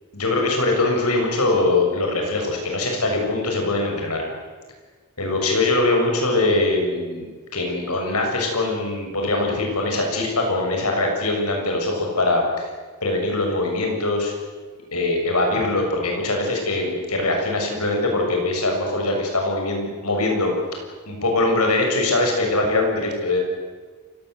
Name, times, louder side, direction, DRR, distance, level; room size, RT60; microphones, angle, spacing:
voice 1, 0.1-4.3 5.2-12.4 13.0-14.3 14.9-20.5 21.1-23.4, left 2 dB, 90° left, 2 dB, 6.8 m, -22 dB
29.0 x 18.0 x 8.1 m, 1.4 s
head